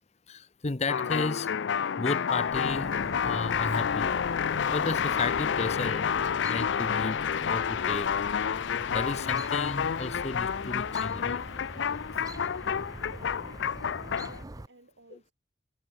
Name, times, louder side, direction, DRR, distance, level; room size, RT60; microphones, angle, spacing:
voice 1, 0.3-1.5 2.0-4.1 4.7-6.1 6.4-8.1 8.9-11.4, left 3 dB, 35° left, 0.8 m, -33 dB
sound 1, 0.9-14.4, left 7 dB, 70° left, 0.4 m, -29 dB
Chirp tweet, 2.5-14.7, right 2 dB, 20° right, 0.6 m, -44 dB
voice 2, 13.0-15.3, right 2 dB, 70° right, 2.7 m, -55 dB
head